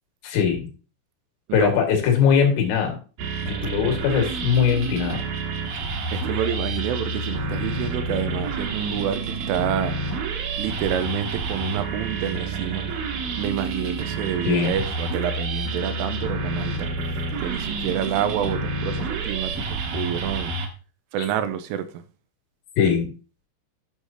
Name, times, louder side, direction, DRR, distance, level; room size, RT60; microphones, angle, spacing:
voice 1, 0.2-0.7 1.5-3.0 3.5-5.2 14.4-14.8 22.8-23.1, left 7 dB, 80° left, 4.6 m, -21 dB
voice 2, 1.5-1.8 6.1-10.0 10.6-12.9 13.3-16.9 17.4-20.5 21.1-22.0, right 9 dB, 85° right, 3.2 m, -28 dB
sound 1, 3.2-20.7, right 3 dB, 60° right, 2.6 m, -29 dB
11.5 x 6.5 x 2.8 m
omnidirectional pair, 5.8 m